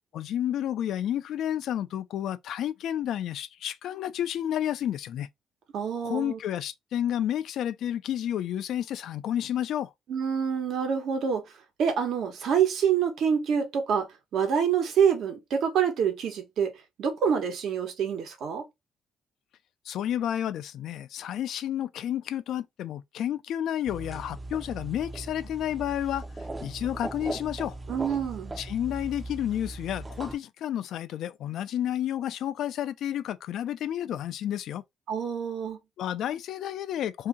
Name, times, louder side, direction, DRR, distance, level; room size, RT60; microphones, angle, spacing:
voice 1, 0.1-5.3 6.0-9.9 19.9-26.3 26.6-27.8 28.6-34.8 36.0-37.3, left 11 dB, 75° left, 0.4 m, -31 dB
voice 2, 5.7-6.4 10.1-11.4 11.8-16.7 17.0-18.6 27.9-28.6 35.1-35.8, right 7 dB, 70° right, 1.1 m, -26 dB
sound 1, 23.9-30.4, right 2 dB, 20° right, 0.5 m, -39 dB
2.7 x 2.7 x 3.6 m
cardioid pair, 90°, 0 cm